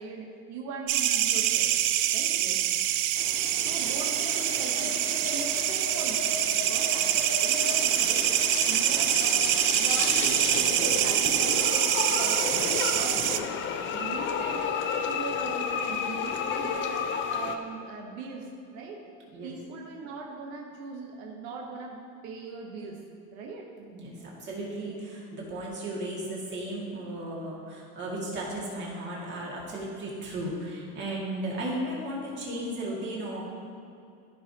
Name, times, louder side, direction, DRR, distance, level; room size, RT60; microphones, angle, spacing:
voice 1, 0.0-1.7 2.1-2.4 3.6-6.2 6.5-8.4 8.6-13.5 13.9-19.0 19.4-23.0 23.3-23.7, right 3 dB, 90° right, 0 dB, 1.1 m, -40 dB
sound 1, 0.9-13.4, right 12 dB, 65° right, 0.5 m, -25 dB
sound 2, 3.2-17.6, left 6 dB, 35° left, 0.5 m, -33 dB
voice 2, 23.8-33.4, right 1 dB, 35° right, -5 dB, 2.1 m, -35 dB
14.0 x 5.6 x 2.8 m, 2.6 s
cardioid pair, 160°, 33 cm